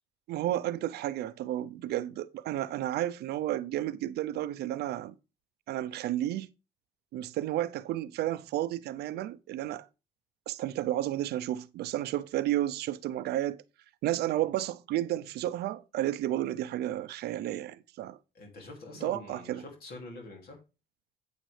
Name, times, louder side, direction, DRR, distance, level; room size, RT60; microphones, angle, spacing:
voice 1, 0.3-5.2 5.7-6.5 7.1-9.9 10.5-13.6 14.0-18.2 19.0-19.6, right 13 dB, 75° right, 0.6 m, -32 dB
voice 2, 18.3-20.6, left 2 dB, 65° left, 2.8 m, -45 dB
9.0 x 8.0 x 3.3 m
cardioid pair, 110°, 17 cm